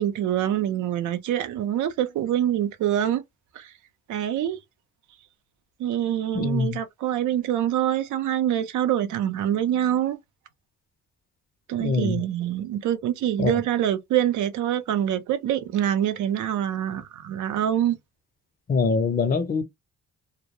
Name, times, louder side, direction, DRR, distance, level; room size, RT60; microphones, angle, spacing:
voice 1, 0.0-3.2 3.5-3.7 4.1-4.6 5.8-10.2 11.7-18.0, right 11 dB, 75° right, 0.6 m, -25 dB
voice 2, 6.3-6.8 11.8-12.2 13.4-13.6 18.7-19.6, left 4 dB, 30° left, 0.5 m, -24 dB
2.2 x 2.1 x 2.8 m
cardioid pair, 90°, 30 cm